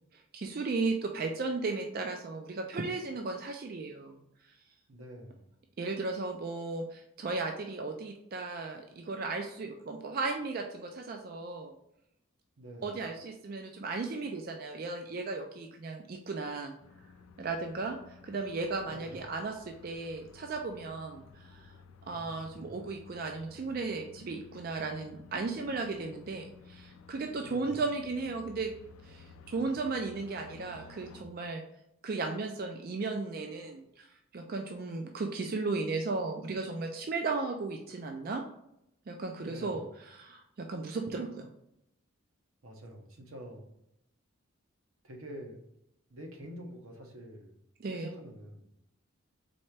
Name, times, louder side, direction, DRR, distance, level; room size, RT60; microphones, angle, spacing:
voice 1, 0.1-4.2 5.8-11.7 12.8-16.7 17.4-18.0 18.2-21.7 22.1-28.7 29.0-31.6 32.0-34.1 34.3-38.4 39.1-41.5 47.8-48.1, right 3 dB, 45° right, 4 dB, 0.3 m, -35 dB
voice 2, 4.9-5.5 12.6-12.9 18.9-19.2 22.1-22.8 27.4-27.8 39.4-39.8 42.6-43.7 45.0-45.6 46.1-47.6 47.9-48.7, equal, 80° right, 2 dB, 0.9 m, -47 dB
sound 1, 16.8-31.2, left 4 dB, 85° left, 0.4 m, -54 dB
4.2 x 3.3 x 3.2 m, 0.80 s
head